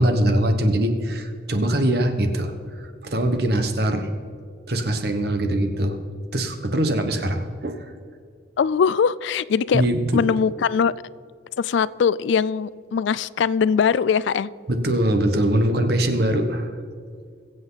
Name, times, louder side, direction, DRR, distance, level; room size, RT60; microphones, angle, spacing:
voice 1, 0.0-2.5 3.0-4.1 4.7-6.0 6.3-7.8 9.7-10.2 14.7-16.7, right 1 dB, 55° right, 7 dB, 1.2 m, -22 dB
voice 2, 8.6-9.8 10.1-10.9 11.6-14.5, left 6 dB, 70° left, 19 dB, 0.3 m, -21 dB
22.0 x 7.9 x 4.0 m, 2.2 s
head